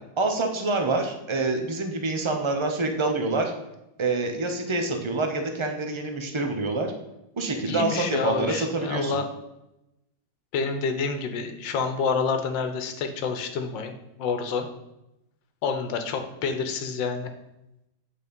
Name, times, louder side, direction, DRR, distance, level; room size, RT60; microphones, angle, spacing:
voice 1, 0.2-3.5 4.0-6.9 7.3-9.2, right 3 dB, 35° right, 4 dB, 0.4 m, -26 dB
voice 2, 7.6-9.2 10.5-13.9 14.2-14.7 15.6-17.3, left 5 dB, 90° left, 7 dB, 1.6 m, -28 dB
8.5 x 4.2 x 5.3 m, 0.89 s
omnidirectional pair, 1.9 m